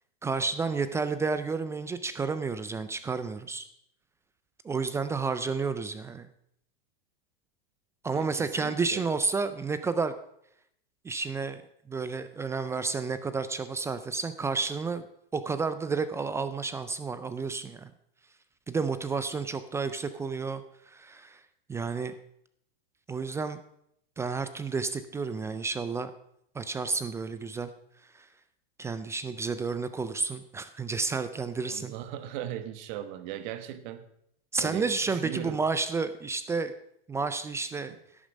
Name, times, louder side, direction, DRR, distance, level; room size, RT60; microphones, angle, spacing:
voice 1, 0.2-3.6 4.6-6.3 8.0-10.1 11.0-11.6 11.9-15.0 15.3-17.9 18.7-21.4 21.7-22.1 23.1-23.6 24.2-26.1 26.6-27.7 28.1-28.3 28.8-31.9 34.5-36.7 37.1-37.9, right 4 dB, 10° right, 0.3 m, -31 dB
voice 2, 8.1-9.1 31.6-34.1 34.6-35.6 37.9-38.0, right 11 dB, 50° right, 1.2 m, -39 dB
11.0 x 8.9 x 5.2 m
hypercardioid pair, 130°, 29 cm